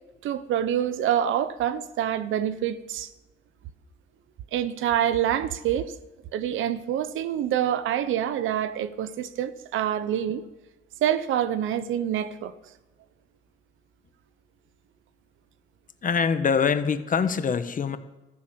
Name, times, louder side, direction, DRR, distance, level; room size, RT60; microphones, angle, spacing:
voice 1, 0.2-3.1 4.5-5.9 6.3-10.4 11.0-12.5, right 10 dB, 80° right, 0.8 m, -26 dB
voice 2, 16.0-18.0, left 6 dB, 40° left, 1.2 m, -24 dB
13.5 x 10.0 x 6.9 m
cardioid pair, 90°, 20 cm